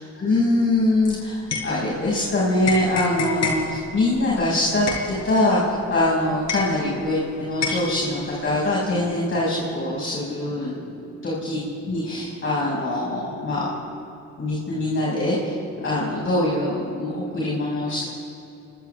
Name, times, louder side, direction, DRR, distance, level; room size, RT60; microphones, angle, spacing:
voice 1, 0.0-13.7 14.4-15.5 15.8-18.0, left 1 dB, 40° left, -6 dB, 6.6 m, -23 dB
sound 1, 0.8-2.3 2.6-7.2 7.6-8.7, left 5 dB, 60° left, 5.7 m, -30 dB
30.0 x 24.5 x 3.6 m, 2.9 s
cardioid pair, 90°, 30 cm